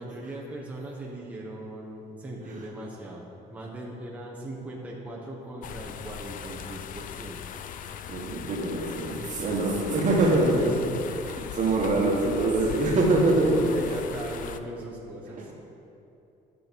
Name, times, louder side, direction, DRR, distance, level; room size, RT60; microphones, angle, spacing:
voice 1, 0.0-7.4 10.8-11.1 11.3-11.5 12.6-13.1 13.7-15.5, right 1 dB, 10° right, -4 dB, 1.2 m, -39 dB
sound 1, 5.6-14.6, left 9 dB, 55° left, 0.4 m, -39 dB
voice 2, 8.1-14.0 15.3-15.5, right 2 dB, 50° right, -1 dB, 1.6 m, -24 dB
8.5 x 6.3 x 5.3 m, 2.7 s
cardioid pair, 110°, 17 cm